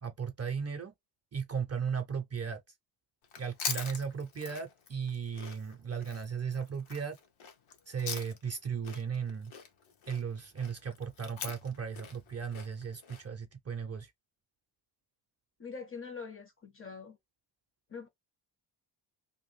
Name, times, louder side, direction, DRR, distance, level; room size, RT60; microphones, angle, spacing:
voice 1, 0.0-0.9 1.3-2.6 3.4-7.2 7.9-9.5 10.1-14.1, right 6 dB, 35° right, 0.4 m, -36 dB
Chewing mastication, 3.2-8.6 8.8-13.2, left 6 dB, 85° left, 0.9 m, -43 dB
voice 2, 15.6-17.2 17.9-18.1, left 5 dB, 30° left, 0.5 m, -44 dB
2.6 x 2.5 x 3.0 m
wide cardioid pair, 170°, 47 cm